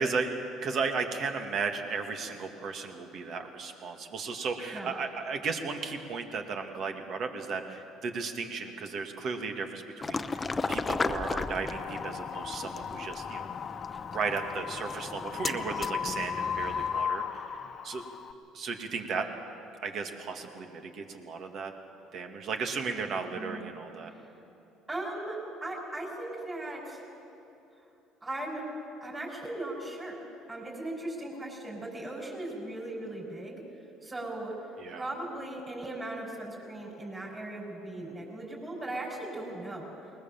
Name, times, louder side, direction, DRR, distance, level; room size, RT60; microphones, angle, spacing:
voice 1, 0.0-10.4 10.7-13.5 14.1-17.6 17.8-18.0 18.5-19.3 19.8-21.7 22.1-24.1 34.8-35.1, right 4 dB, 55° right, 5 dB, 2.2 m, -35 dB
sound 1, 10.0-17.0, left 3 dB, 25° left, 0.9 m, -36 dB
Wind, 10.2-18.3, left 7 dB, 45° left, 1.1 m, -37 dB
voice 2, 24.9-27.0 28.2-28.6 29.0-30.2 30.5-33.6 34.0-34.5 34.9-39.9, right 1 dB, 20° right, -6 dB, 6.0 m, -38 dB
20.5 x 20.0 x 7.4 m, 2.9 s
hypercardioid pair, 70°, 0 cm